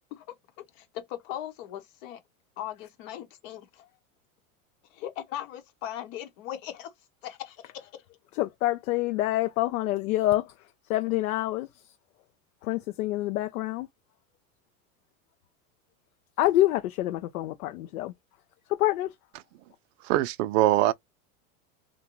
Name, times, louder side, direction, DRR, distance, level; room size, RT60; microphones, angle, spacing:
voice 1, 0.7-2.2 2.6-3.9 4.9-6.9 7.2-7.9, left 12 dB, 60° left, 0.9 m, -39 dB
voice 2, 8.3-10.5 10.9-11.7 12.6-13.9 16.4-18.1 18.7-19.1, left 15 dB, 80° left, 0.5 m, -26 dB
voice 3, 20.0-20.9, right 14 dB, 60° right, 0.5 m, -22 dB
2.5 x 2.2 x 2.9 m
hypercardioid pair, 105°, 43 cm